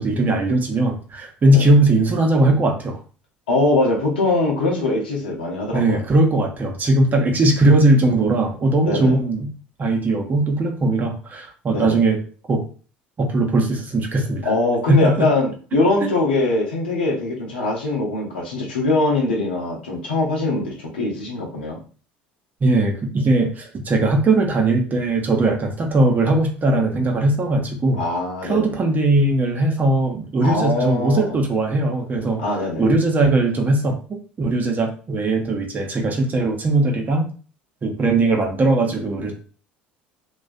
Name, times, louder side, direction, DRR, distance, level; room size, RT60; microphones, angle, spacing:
voice 1, 0.0-3.0 5.7-9.5 9.8-12.2 12.5-12.6 13.2-14.5 14.9-15.3 16.0-16.1 22.6-28.0 28.4-32.4 32.8-37.3 37.8-39.3, right 2 dB, 35° right, 2 dB, 0.7 m, -19 dB
voice 2, 3.5-6.0 8.8-9.2 11.7-12.0 14.4-21.8 28.0-28.7 30.4-31.4 32.4-32.9, left 2 dB, 85° left, -1 dB, 0.7 m, -22 dB
2.3 x 2.2 x 2.5 m, 0.39 s
hypercardioid pair, 65°, 5 cm